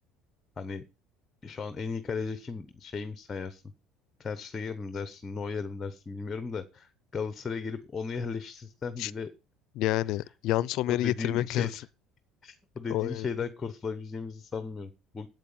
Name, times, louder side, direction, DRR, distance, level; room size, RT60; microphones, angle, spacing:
voice 1, 1.4-3.6 4.2-9.3 10.9-11.9 12.4-15.3, left 5 dB, 15° left, 0.9 m, -36 dB
voice 2, 9.8-11.7 12.9-13.3, left 15 dB, 55° left, 0.5 m, -28 dB
9.1 x 7.9 x 7.1 m
cardioid pair, 170°, 0 cm